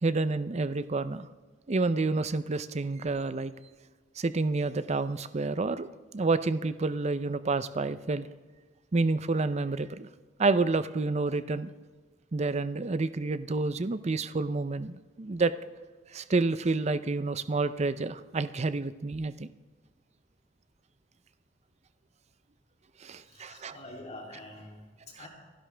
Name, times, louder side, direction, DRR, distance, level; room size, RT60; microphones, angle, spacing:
voice 1, 0.0-1.3 1.7-3.5 4.2-5.9 6.1-8.3 8.9-10.1 10.4-11.7 12.3-15.5 16.1-19.5 23.0-23.8, right 3 dB, 35° right, 13 dB, 0.5 m, -29 dB
voice 2, 23.1-25.3, left 1 dB, 35° left, -1 dB, 3.0 m, -46 dB
30.0 x 11.5 x 3.4 m, 1.4 s
head